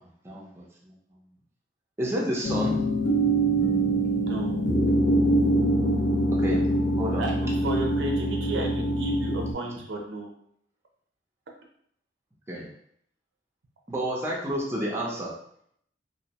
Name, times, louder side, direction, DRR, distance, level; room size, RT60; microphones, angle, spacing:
voice 1, 0.2-0.9 2.0-2.8 6.4-6.6 7.0-7.3 12.5-12.7 13.9-15.3, equal, 15° right, -3 dB, 0.5 m, -30 dB
sound 1, 2.4-9.5, right 1 dB, 60° left, 0.6 m, -24 dB
voice 2, 4.2-4.6 7.2-10.3, right 2 dB, 75° right, 1 dB, 0.5 m, -33 dB
2.6 x 2.0 x 2.8 m, 0.67 s
head